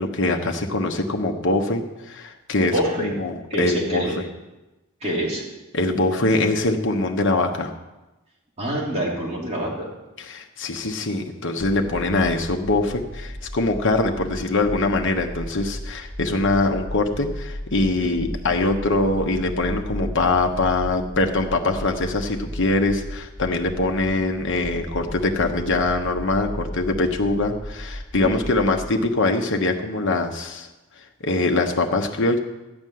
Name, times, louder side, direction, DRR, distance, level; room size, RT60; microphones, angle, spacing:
voice 1, 0.0-4.3 5.7-7.7 10.2-30.7 31.2-32.4, left 2 dB, 60° left, 4 dB, 1.2 m, -23 dB
voice 2, 2.7-3.1 3.5-4.2 5.0-5.4 8.6-9.9 18.0-18.1 28.2-28.3, equal, 30° right, -4 dB, 3.3 m, -26 dB
sound 1, 11.6-28.9, equal, 10° left, 1.2 m, -35 dB
13.5 x 5.3 x 9.4 m, 1.0 s
head